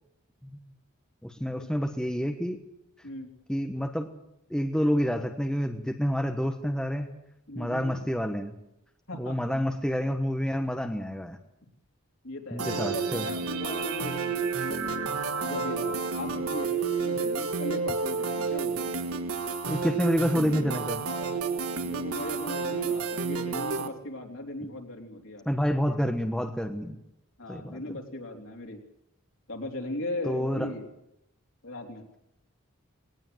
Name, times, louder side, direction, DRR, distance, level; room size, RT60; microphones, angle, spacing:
voice 1, 1.2-2.6 3.5-4.1 4.5-7.1 7.5-8.5 9.2-11.4 12.5-13.3 19.6-21.0 24.6-24.7 25.4-27.0 27.5-28.0 30.3-30.7, equal, 5° left, 5 dB, 1.2 m, -28 dB
voice 2, 7.5-8.0 9.1-9.4 12.2-15.0 15.4-18.9 21.8-25.5 27.4-28.8 29.5-30.9 31.6-32.1, left 1 dB, 65° left, 2 dB, 3.6 m, -38 dB
sound 1, 12.6-23.9, right 5 dB, 90° right, 1.6 m, -30 dB
20.0 x 19.0 x 7.8 m, 0.82 s
head